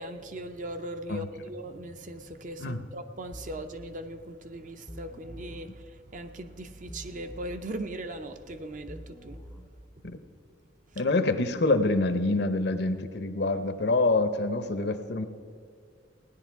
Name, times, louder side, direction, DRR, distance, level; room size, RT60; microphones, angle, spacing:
voice 1, 0.0-9.4, right 1 dB, 40° right, 8 dB, 0.6 m, -39 dB
sound 1, 3.3-3.7 4.9-5.7 6.9-7.7 8.9-9.7, equal, 5° left, 0.4 m, -45 dB
voice 2, 11.0-15.3, left 2 dB, 55° left, 10 dB, 0.7 m, -26 dB
16.5 x 10.5 x 4.6 m, 2.1 s
head